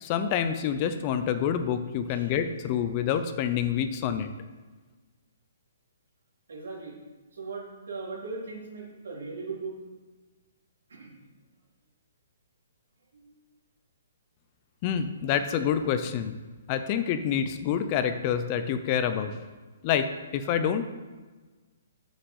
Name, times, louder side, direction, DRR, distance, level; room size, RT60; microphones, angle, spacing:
voice 1, 0.0-4.3 14.8-16.3 16.7-19.3 19.8-20.1 20.3-20.8, left 8 dB, 25° left, 9 dB, 0.6 m, -27 dB
voice 2, 6.5-7.0 7.3-9.8 10.9-11.2 13.1-13.3, right 4 dB, 80° right, -2 dB, 3.7 m, -39 dB
7.9 x 6.5 x 8.0 m, 1.3 s
hypercardioid pair, 175°, 0 cm